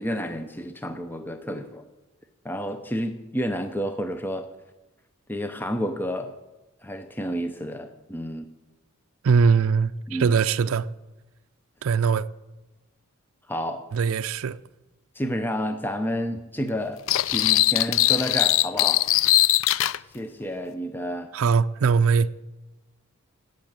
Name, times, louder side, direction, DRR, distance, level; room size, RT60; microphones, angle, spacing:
voice 1, 0.0-1.9 2.4-4.5 5.3-6.4 6.8-8.5 10.1-10.4 13.5-13.9 15.1-19.1 20.1-21.3, equal, 10° left, 0.6 m, -30 dB
voice 2, 9.2-10.9 11.8-12.3 13.9-14.6 21.3-22.3, right 5 dB, 75° right, 0.4 m, -21 dB
sound 1, 17.1-20.0, left 14 dB, 65° left, 0.4 m, -20 dB
16.5 x 6.4 x 8.9 m
head